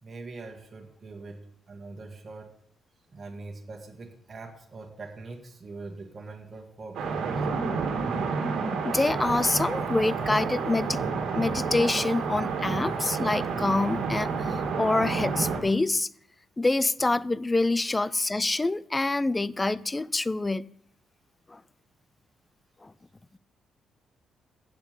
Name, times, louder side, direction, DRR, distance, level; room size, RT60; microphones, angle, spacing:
voice 1, 0.0-1.4 1.7-2.5 3.1-7.5, right 3 dB, 35° right, 1 dB, 1.7 m, -42 dB
sound 1, 7.0-15.6, right 5 dB, 80° right, 1.7 m, -29 dB
voice 2, 8.8-11.0 11.3-16.1 16.6-20.6 21.5-21.6 22.8-22.9, left 2 dB, 20° left, 19 dB, 0.4 m, -26 dB
8.3 x 7.2 x 6.6 m, 0.68 s
cardioid pair, 90°, 0 cm